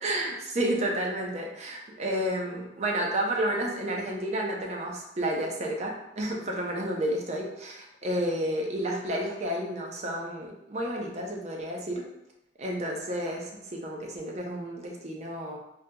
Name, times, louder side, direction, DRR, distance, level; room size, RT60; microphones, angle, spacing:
voice 1, 0.0-12.0 12.6-15.6, right 1 dB, 40° right, 0 dB, 0.5 m, -31 dB
3.7 x 2.8 x 2.2 m, 0.86 s
head